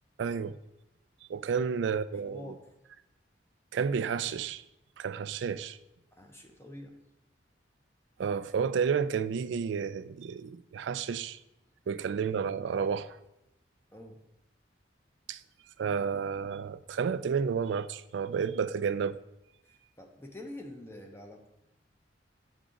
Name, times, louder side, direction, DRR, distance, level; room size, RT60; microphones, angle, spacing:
voice 1, 0.2-0.6 1.3-2.5 3.7-4.6 5.0-5.8 8.2-11.4 11.9-13.2 15.3-15.4 15.8-19.2, right 6 dB, 75° right, 0.3 m, -31 dB
voice 2, 2.2-2.7 6.1-7.0 13.9-14.2 19.6-21.5, left 1 dB, 15° left, 0.7 m, -46 dB
8.1 x 4.8 x 3.7 m
head